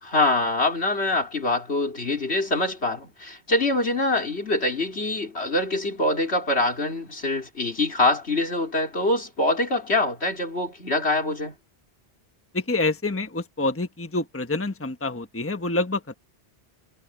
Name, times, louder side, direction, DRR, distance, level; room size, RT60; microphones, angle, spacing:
voice 1, 0.0-11.5, left 2 dB, 75° left, 4.0 m, -24 dB
voice 2, 12.5-16.2, left 2 dB, 15° left, 1.2 m, -27 dB
omnidirectional pair, 1.1 m